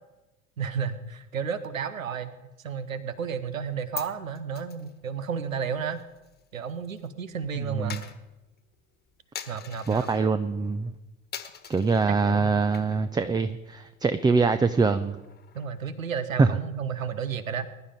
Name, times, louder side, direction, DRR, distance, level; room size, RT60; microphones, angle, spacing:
voice 1, 0.6-6.0 6.5-8.0 9.5-10.3 12.1-12.6 15.5-17.7, right 6 dB, 80° right, 13 dB, 1.2 m, -32 dB
Coin (dropping), 3.5-7.1 7.3-10.2 10.7-11.0 11.3-12.1 12.6-13.2 13.5-13.6 13.9-15.9, left 8 dB, 25° left, 1.5 m, -44 dB
voice 2, 9.9-10.9 11.7-15.2 16.4-16.5, right 4 dB, 10° right, 12 dB, 0.6 m, -23 dB
21.5 x 12.0 x 5.1 m, 1.0 s
figure-of-eight pair, 75°, 40 cm